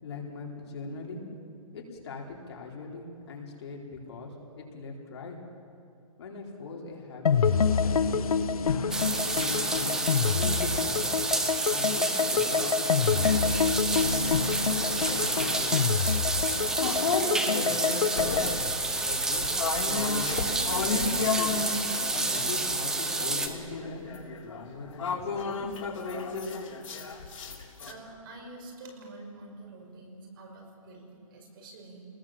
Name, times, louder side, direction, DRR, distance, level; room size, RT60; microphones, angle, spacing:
voice 1, 0.0-1.2 1.7-5.4 6.2-7.4 7.8-8.8 9.3-11.2 11.7-14.5 15.0-16.1 16.8-18.5 18.9-19.4 19.8-21.6 22.1-24.1 24.4-25.7, left 3 dB, 50° left, -1 dB, 4.1 m, -40 dB
sound 1, 7.3-18.5, left 6 dB, 90° left, 1.0 m, -27 dB
sound 2, 8.9-23.5, right 2 dB, 5° right, 0.7 m, -29 dB
sound 3, 12.0-13.3 13.9-22.8 23.2-27.9, left 4 dB, 65° left, 3.6 m, -34 dB
voice 2, 27.8-32.1, right 2 dB, 40° right, 2 dB, 5.8 m, -47 dB
27.5 x 20.5 x 7.5 m, 2.6 s
hypercardioid pair, 165°, 18 cm